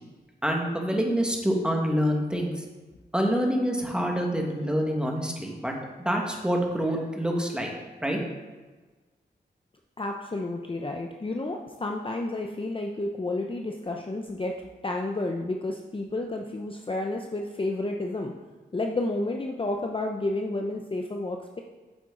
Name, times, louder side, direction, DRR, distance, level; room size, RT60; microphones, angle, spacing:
voice 1, 0.4-2.6 3.1-5.7 6.0-7.7 8.0-8.2, equal, 5° right, 0 dB, 1.5 m, -26 dB
voice 2, 10.0-14.6 14.8-18.3 18.7-21.6, left 2 dB, 30° left, 2 dB, 0.6 m, -31 dB
8.7 x 7.3 x 3.8 m, 1.3 s
wide cardioid pair, 90°, 18 cm